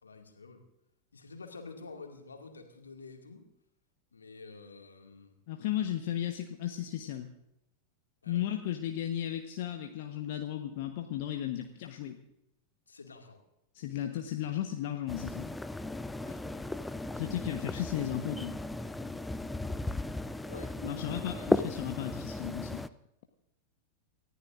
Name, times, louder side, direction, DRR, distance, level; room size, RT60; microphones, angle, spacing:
voice 1, 0.0-0.6 1.1-3.5 4.1-5.4 8.2-8.5 12.9-13.4 16.2-16.7 20.5-20.8 21.3-21.5, left 4 dB, 75° left, 4 dB, 2.3 m, -49 dB
voice 2, 5.5-7.3 8.3-12.2 13.7-15.5 17.1-18.6 20.8-22.8, left 11 dB, 50° left, 5 dB, 1.1 m, -35 dB
sound 1, 15.1-22.9, left 2 dB, 5° left, 0.5 m, -35 dB
29.0 x 14.5 x 2.6 m, 0.84 s
figure-of-eight pair, 90°, 0 cm